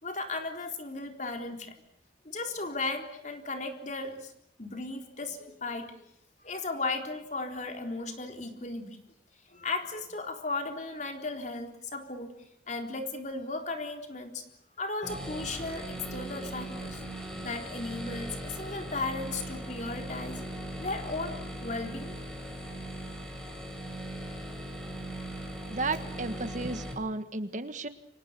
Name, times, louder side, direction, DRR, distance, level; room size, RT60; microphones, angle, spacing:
voice 1, 0.0-1.7 2.2-4.3 4.6-5.9 6.4-9.0 9.5-12.3 12.7-14.4 14.8-17.0 17.4-20.4 20.8-22.2, left 3 dB, 40° left, 4 dB, 3.9 m, -36 dB
sound 1, 15.0-26.9, right 1 dB, 5° left, 6.1 m, -39 dB
voice 2, 25.7-27.9, right 3 dB, 45° right, 10 dB, 1.6 m, -33 dB
29.5 x 26.0 x 6.8 m, 0.76 s
head